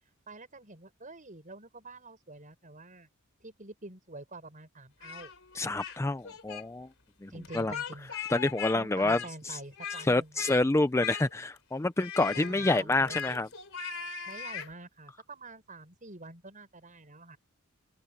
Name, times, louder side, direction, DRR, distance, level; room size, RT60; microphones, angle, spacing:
voice 1, 0.3-3.1 3.4-5.3 7.3-8.1 8.7-10.4 12.3-13.4 14.3-17.4, right 2 dB, 40° right, 6.9 m, -47 dB
Speech, 5.0-6.0 6.2-6.6 7.4-8.8 9.0-10.1 10.4-10.6 11.0-11.6 12.0-14.7, left 7 dB, 65° left, 4.4 m, -39 dB
voice 2, 5.5-6.9 7.2-7.7 8.3-9.2 9.4-9.6 10.0-13.5, left 2 dB, 15° left, 0.5 m, -28 dB
open air
head